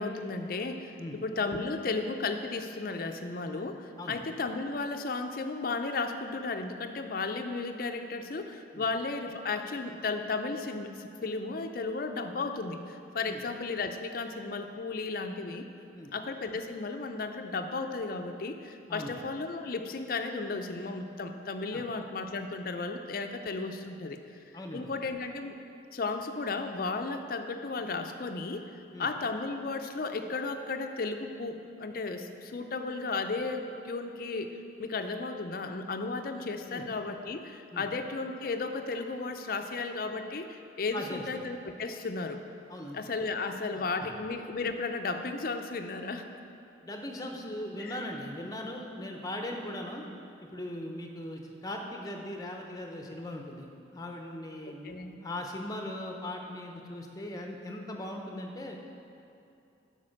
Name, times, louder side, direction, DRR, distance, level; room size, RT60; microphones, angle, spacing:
voice 1, 0.0-15.7 16.1-24.2 24.7-25.6 25.9-28.7 29.0-42.4 42.9-46.2 47.8-48.0 54.8-55.2, left 3 dB, 50° left, 6 dB, 0.5 m, -34 dB
voice 2, 24.5-24.9 28.9-29.1 36.7-36.8 37.7-37.8 40.9-41.2 42.7-43.0 43.7-43.9 46.8-50.0 50.4-58.8, left 1 dB, 20° left, 2 dB, 0.7 m, -39 dB
8.4 x 5.3 x 6.4 m, 2.6 s
head